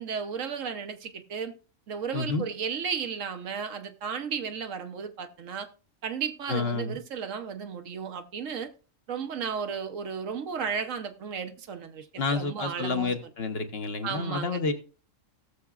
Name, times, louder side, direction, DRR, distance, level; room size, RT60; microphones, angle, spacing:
voice 1, 0.0-1.5 1.9-5.7 6.0-8.7 9.1-13.1 14.0-14.6, right 6 dB, 75° right, 1.2 m, -34 dB
voice 2, 2.1-2.4 6.5-7.0 12.2-14.7, left 4 dB, 50° left, 1.2 m, -29 dB
17.5 x 7.0 x 2.4 m
omnidirectional pair, 1.4 m